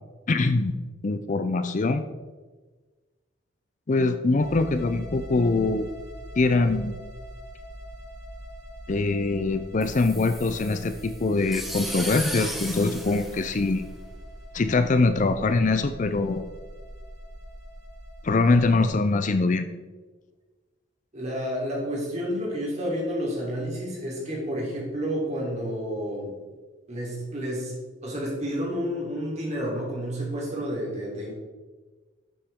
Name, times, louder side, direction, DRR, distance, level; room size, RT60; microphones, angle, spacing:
voice 1, 0.3-0.7 1.0-2.0 3.9-5.9 6.4-7.0 8.9-13.9 14.5-16.5 18.2-19.7, left 3 dB, 40° left, 9 dB, 0.5 m, -23 dB
sound 1, 4.4-18.9, equal, 90° right, 2.0 m, -42 dB
sound 2, 9.8-14.2, equal, ahead, 0.9 m, -36 dB
voice 2, 21.1-26.3 26.9-27.7 28.0-31.3, equal, 35° right, -4 dB, 3.4 m, -30 dB
11.5 x 7.4 x 3.6 m, 1.3 s
head